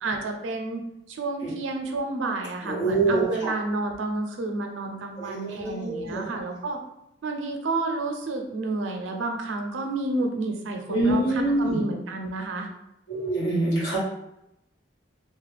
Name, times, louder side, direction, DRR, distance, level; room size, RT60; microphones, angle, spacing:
voice 1, 0.0-0.8 1.1-6.8 7.2-12.7, right 2 dB, 90° right, 3 dB, 0.5 m, -30 dB
voice 2, 2.6-3.5 5.2-6.2 10.9-11.8 13.1-14.0, right 2 dB, 85° left, -9 dB, 1.2 m, -25 dB
2.4 x 2.1 x 3.3 m, 0.83 s
head